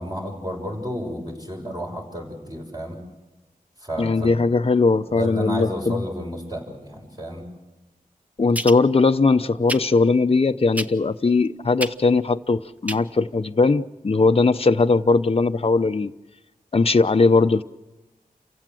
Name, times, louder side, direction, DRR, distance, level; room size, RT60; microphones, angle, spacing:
voice 1, 0.0-3.0 3.8-4.4 5.1-7.4, equal, 25° right, 6.5 m, -31 dB
voice 2, 4.0-6.0 8.4-16.1 16.7-17.6, left 3 dB, 40° left, 0.7 m, -19 dB
sound 1, 8.5-8.8 9.7-9.8 10.7-11.1 11.8-11.9 12.9-13.0 13.3-13.4, equal, 10° right, 1.0 m, -28 dB
29.0 x 16.5 x 7.7 m
wide cardioid pair, 70°, 15 cm